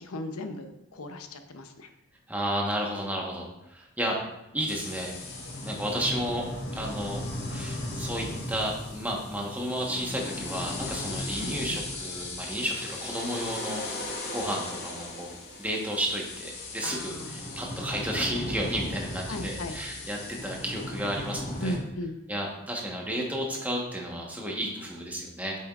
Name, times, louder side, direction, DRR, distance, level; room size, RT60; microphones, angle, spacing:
voice 1, 0.0-1.9 11.4-11.8 16.8-17.4 19.3-19.8 21.6-22.2, left 1 dB, 85° left, 7 dB, 0.7 m, -37 dB
voice 2, 2.3-4.2 4.5-5.1 5.6-6.4 6.7-7.2 7.5-13.8 14.3-21.8 22.3-25.6, equal, 5° right, -1 dB, 1.1 m, -32 dB
sound 1, 4.7-21.8, left 2 dB, 50° left, 1.7 m, -37 dB
8.6 x 6.9 x 2.4 m, 0.90 s
head